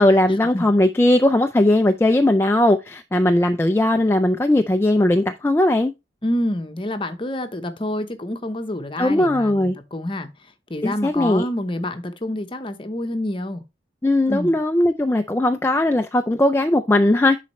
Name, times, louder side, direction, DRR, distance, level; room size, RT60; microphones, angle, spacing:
voice 1, 0.0-5.9 9.0-9.8 10.8-11.4 14.0-17.4, left 1 dB, 15° left, 0.4 m, -18 dB
voice 2, 6.2-10.3 10.7-13.6 14.3-14.6, left 1 dB, 30° left, 0.9 m, -27 dB
10.5 x 4.2 x 3.1 m
head